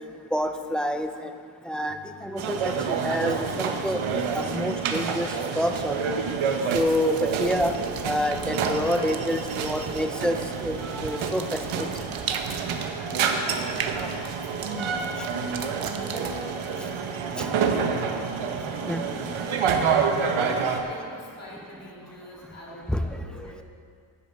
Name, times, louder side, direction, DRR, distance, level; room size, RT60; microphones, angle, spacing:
voice 1, 0.3-1.3 1.7-4.0 4.3-6.2 6.7-7.7 8.1-11.9 16.1-16.5 17.4-17.5 18.9-19.0 22.9-23.1, equal, ahead, 6 dB, 0.3 m, -28 dB
sound 1, 1.9-6.1, equal, 25° right, 2.1 m, -50 dB
sound 2, 2.4-20.8, right 6 dB, 80° right, 1.0 m, -28 dB
sound 3, 6.6-17.8, right 6 dB, 45° right, 0.7 m, -39 dB
voice 2, 13.1-23.6, left 1 dB, 30° left, -5 dB, 2.5 m, -44 dB
11.0 x 10.0 x 5.3 m, 2.3 s
wide cardioid pair, 175°, 48 cm